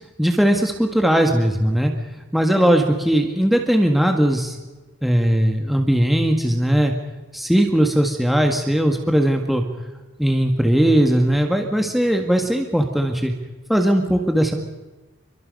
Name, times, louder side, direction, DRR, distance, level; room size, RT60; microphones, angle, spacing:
voice 1, 0.2-1.9 2.3-4.6 5.0-6.9 7.3-9.6 10.2-13.3 13.7-14.5, equal, ahead, 3 dB, 1.7 m, -18 dB
29.5 x 23.5 x 5.4 m, 1.2 s
head